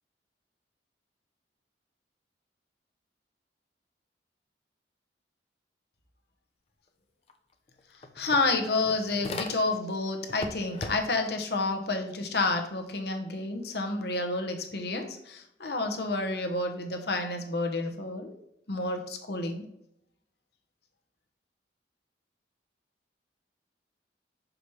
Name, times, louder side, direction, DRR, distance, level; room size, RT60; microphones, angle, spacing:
sound 1, 7.3-7.4 7.7-9.9 10.3-11.3, left 2 dB, 35° left, 0.5 m, -39 dB
voice 1, 8.2-18.3 18.7-19.7, left 3 dB, 65° left, 4 dB, 0.9 m, -30 dB
6.0 x 5.0 x 3.1 m, 0.78 s
head